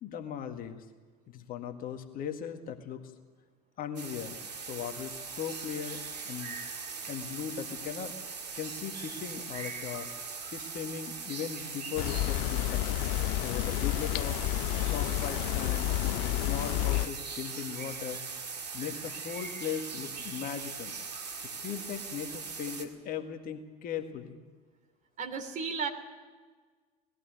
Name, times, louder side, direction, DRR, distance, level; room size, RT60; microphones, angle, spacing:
voice 1, 0.0-0.8 1.3-3.1 3.8-4.4 4.7-6.6 7.1-8.1 8.5-10.1 10.5-12.9 13.4-14.4 14.8-18.2 18.7-20.9 21.6-24.4, left 8 dB, 45° left, 6 dB, 1.9 m, -38 dB
sound 1, 4.0-22.9, right 5 dB, 85° right, 2.0 m, -40 dB
sound 2, 12.0-17.1, left 17 dB, 60° left, 0.6 m, -30 dB
voice 2, 25.2-25.9, right 5 dB, 40° right, 6 dB, 3.1 m, -34 dB
20.0 x 15.0 x 9.3 m, 1.5 s
hypercardioid pair, 75°, 21 cm